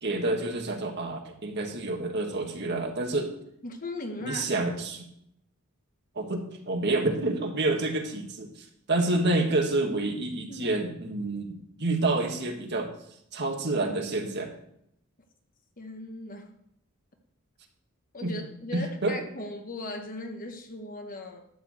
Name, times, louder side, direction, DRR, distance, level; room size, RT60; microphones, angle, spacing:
voice 1, 0.0-3.3 4.2-5.1 6.2-8.5 8.9-12.9 13.3-14.5 18.2-18.3 18.7-19.2, right 2 dB, 50° right, 2 dB, 1.7 m, -28 dB
voice 2, 3.6-4.4 10.5-10.8 15.8-16.5 18.1-21.4, left 2 dB, 40° left, 4 dB, 1.2 m, -38 dB
12.0 x 4.6 x 7.8 m, 0.74 s
head